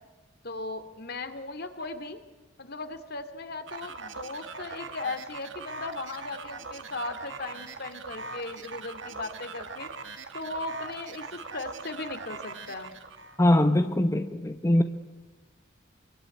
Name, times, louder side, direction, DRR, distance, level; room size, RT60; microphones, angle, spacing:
voice 1, 0.4-2.2 2.6-9.9 10.3-12.9, left 3 dB, 55° left, 10 dB, 2.4 m, -37 dB
sound 1, 3.7-13.4, right 4 dB, 75° right, 2.2 m, -41 dB
voice 2, 13.4-14.8, left 1 dB, 15° left, 8 dB, 1.0 m, -22 dB
26.5 x 23.5 x 9.6 m, 1.1 s
head